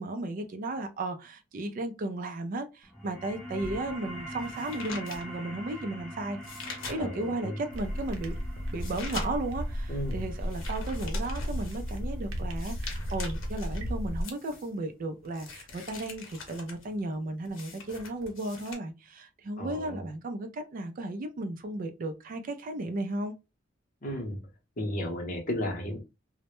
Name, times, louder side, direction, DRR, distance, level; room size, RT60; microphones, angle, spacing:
voice 1, 0.0-6.4 6.9-8.3 8.7-23.3, right 2 dB, 45° right, 0.3 m, -35 dB
sound 1, 2.8-13.9, equal, 5° left, 0.6 m, -45 dB
sound 2, 3.6-7.4 7.9-18.7, left 4 dB, 80° left, 0.7 m, -44 dB
voice 2, 7.0-7.6 9.9-10.2 19.6-20.0 24.0-24.5 24.8-26.0, left 1 dB, 45° left, 0.7 m, -34 dB
sound 3, 7.7-14.2, equal, 85° right, 0.6 m, -34 dB
2.1 x 2.0 x 2.9 m
head